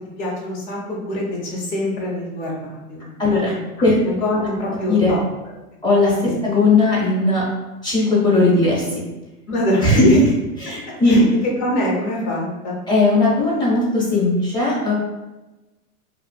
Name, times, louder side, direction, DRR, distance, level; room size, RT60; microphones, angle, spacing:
voice 1, 0.2-3.6 4.0-5.2 6.2-6.4 9.5-10.2 11.1-12.8, left 1 dB, 40° left, -2 dB, 0.9 m, -24 dB
voice 2, 3.2-3.5 3.8-4.0 4.9-5.2 5.8-6.1 6.4-7.4 7.8-9.0 9.8-10.2 10.6-11.2 12.9-14.9, left 2 dB, 10° left, -6 dB, 0.5 m, -17 dB
2.4 x 2.4 x 2.2 m, 1.1 s
hypercardioid pair, 120°, 44 cm